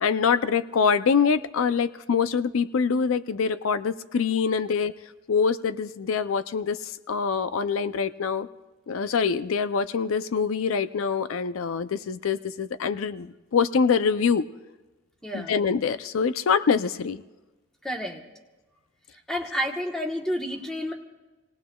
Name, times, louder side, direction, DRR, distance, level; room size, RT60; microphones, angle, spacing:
voice 1, 0.0-5.0 5.3-8.5 8.9-14.5 15.3-17.2, left 6 dB, 85° left, 14 dB, 0.4 m, -24 dB
voice 2, 15.2-15.5 17.8-18.2 19.3-20.9, equal, 5° left, 1 dB, 1.1 m, -30 dB
28.0 x 18.5 x 2.3 m, 1.2 s
head